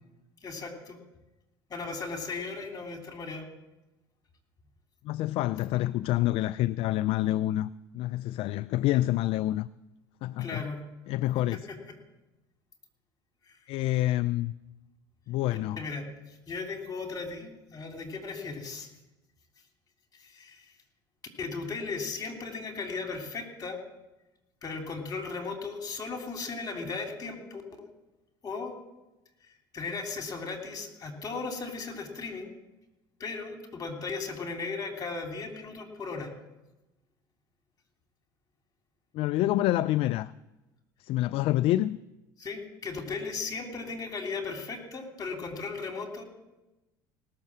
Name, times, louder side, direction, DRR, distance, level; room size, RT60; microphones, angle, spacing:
voice 1, 0.4-1.0 1.7-3.5 10.4-10.8 11.5-11.8 13.4-13.6 15.8-16.0 16.3-18.9 20.1-20.7 21.4-23.8 24.6-27.9 28.4-28.7 29.7-32.5 33.2-36.3 42.4-46.2, left 4 dB, 35° left, 3.2 m, -36 dB
voice 2, 5.0-9.7 10.2-10.6 11.1-11.6 13.7-14.5 15.3-15.8 39.1-40.3 41.0-42.0, left 15 dB, 55° left, 0.4 m, -27 dB
18.0 x 6.7 x 7.5 m
hypercardioid pair, 75°, 11 cm